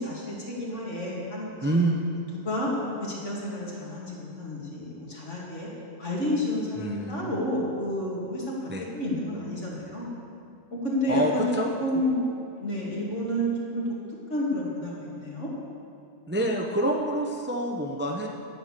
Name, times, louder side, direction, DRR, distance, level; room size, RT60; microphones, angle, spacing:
voice 1, 0.0-1.8 2.3-2.7 3.0-5.7 6.0-10.1 10.7-12.2 12.6-13.8 14.3-15.5, left 1 dB, 70° left, -5 dB, 2.8 m, -30 dB
voice 2, 1.6-2.0 6.8-7.3 8.7-8.9 11.1-11.7 16.3-18.3, right 1 dB, 10° right, 1 dB, 0.6 m, -27 dB
9.4 x 9.1 x 6.6 m, 2.5 s
omnidirectional pair, 1.3 m